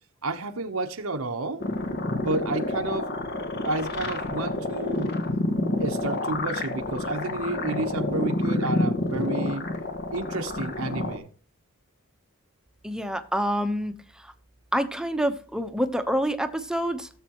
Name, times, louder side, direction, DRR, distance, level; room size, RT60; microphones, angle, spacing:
voice 1, 0.2-1.7 2.2-3.1 3.6-5.1 5.8-9.6 10.1-11.3, right 2 dB, 75° right, 1.1 m, -30 dB
sound 1, 1.6-11.2, left 2 dB, 50° left, 1.7 m, -29 dB
voice 2, 12.8-14.3 14.7-17.1, equal, 5° right, 1.0 m, -27 dB
17.0 x 7.5 x 3.0 m
head